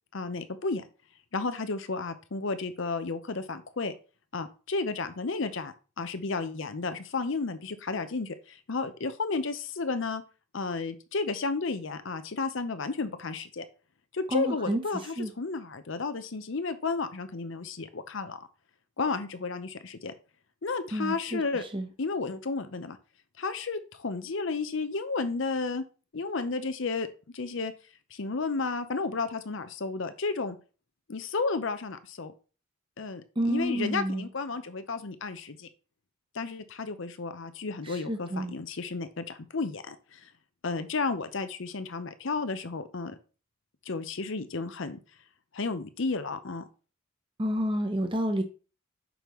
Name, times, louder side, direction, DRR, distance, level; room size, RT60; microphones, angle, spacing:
voice 1, 0.1-0.8 1.3-3.9 4.3-10.2 10.5-13.6 14.1-18.5 19.0-20.1 20.6-21.6 22.0-23.0 23.4-25.8 26.1-27.1 27.3-27.7 28.1-30.6 31.1-32.3 33.0-35.7 36.3-40.3 40.6-43.2 43.9-45.0 45.5-46.6, left 4 dB, 60° left, 11 dB, 0.7 m, -32 dB
voice 2, 14.3-14.8 15.2-15.3 20.9-21.4 21.7-21.9 33.4-34.3 37.9-38.5 47.4-48.4, equal, 25° right, 7 dB, 0.9 m, -29 dB
6.2 x 5.3 x 3.1 m, 0.35 s
head